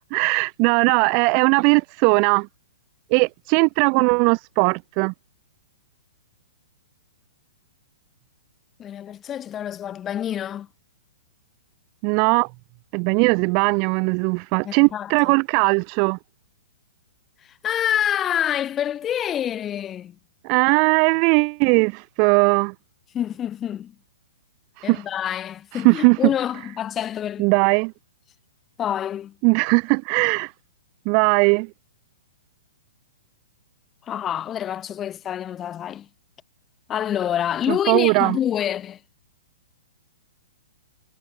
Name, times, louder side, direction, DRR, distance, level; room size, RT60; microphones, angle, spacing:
voice 1, 0.1-2.5 3.1-5.1 12.0-12.5 12.9-16.2 20.4-22.7 24.9-25.0 25.8-26.2 27.4-27.9 29.4-30.5 31.1-31.7 37.9-38.4, right 38 dB, 40° right, 0.7 m, -19 dB
voice 2, 8.8-10.7 14.6-15.3 17.4-20.2 23.1-23.9 24.8-27.5 28.8-29.3 34.0-36.1 36.9-39.0, left 10 dB, 20° left, 5.8 m, -27 dB
hypercardioid pair, 130°, 0 cm